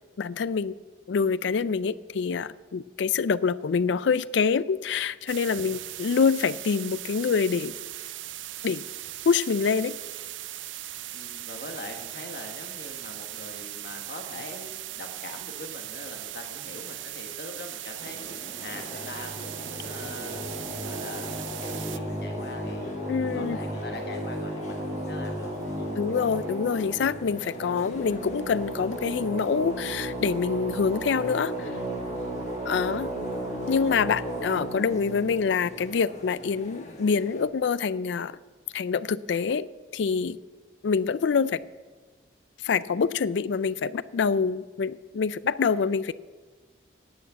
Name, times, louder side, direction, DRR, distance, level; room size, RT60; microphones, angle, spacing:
voice 1, 0.2-0.7 1.1-7.7 8.6-8.8 9.3-10.0 23.1-23.6 26.0-31.7 32.6-33.1 33.7-38.4 38.7-40.4 40.8-41.6 42.6-46.1, left 5 dB, 75° left, 0.4 m, -26 dB
sound 1, 5.3-22.0, right 14 dB, 90° right, 0.5 m, -39 dB
voice 2, 11.1-23.0 23.3-25.9, left 2 dB, 55° left, 1.3 m, -43 dB
sound 2, 18.0-37.4, equal, 40° left, 1.4 m, -44 dB
sound 3, 18.5-36.6, right 1 dB, 30° right, 3.4 m, -35 dB
11.0 x 8.6 x 8.0 m
head